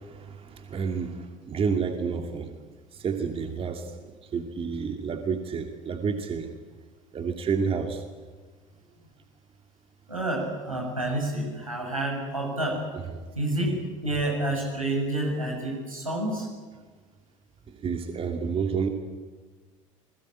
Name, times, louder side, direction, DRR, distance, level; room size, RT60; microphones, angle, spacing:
voice 1, 0.7-1.1 1.5-2.5 3.0-3.8 4.3-6.5 7.1-8.0 17.8-18.9, right 6 dB, 35° right, 5 dB, 2.7 m, -29 dB
voice 2, 10.1-12.8 13.4-16.5, right 1 dB, 85° right, 0 dB, 7.1 m, -29 dB
30.0 x 21.0 x 8.7 m, 1.4 s
figure-of-eight pair, 65°, 17 cm